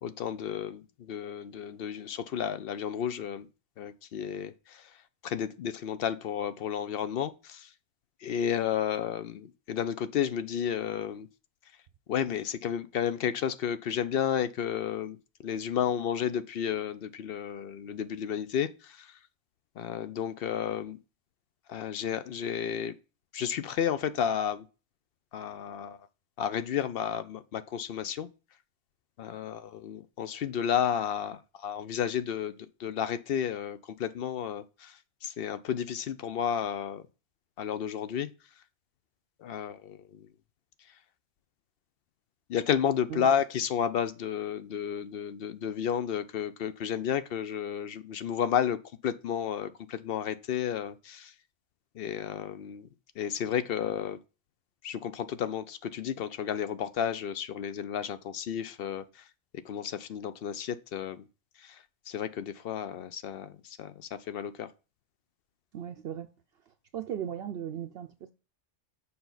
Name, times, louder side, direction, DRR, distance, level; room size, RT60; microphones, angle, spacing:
voice 1, 0.0-3.5 3.8-4.9 5.2-7.7 8.2-11.3 12.1-15.2 15.4-19.2 19.8-21.0 21.7-22.9 23.3-24.6 25.3-26.0 26.4-28.3 29.2-37.0 37.6-38.3 39.4-40.3 42.5-51.3 51.9-52.9 53.2-54.2 54.8-59.2 59.6-61.3 61.6-64.7, left 8 dB, 60° left, 0.7 m, -32 dB
voice 2, 65.7-66.3 66.9-68.3, right 9 dB, 65° right, 0.7 m, -37 dB
6.9 x 5.5 x 3.9 m
omnidirectional pair, 1.2 m